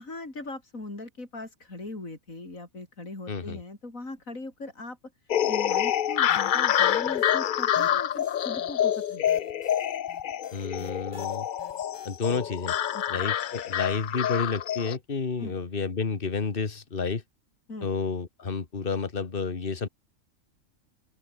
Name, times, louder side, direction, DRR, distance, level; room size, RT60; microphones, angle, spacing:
voice 1, 0.0-5.0 5.5-9.3 12.9-13.2 15.4-15.6 17.7-17.9, left 2 dB, 80° left, 5.8 m, -40 dB
voice 2, 3.3-3.6 10.5-11.5 12.1-12.8 13.1-17.2 17.8-19.9, left 4 dB, 40° left, 2.0 m, -30 dB
sound 1, 5.3-15.0, left 10 dB, 60° left, 0.5 m, -27 dB
sound 2, 6.3-7.3 7.7-12.6, equal, 20° left, 7.6 m, -53 dB
open air
omnidirectional pair, 1.4 m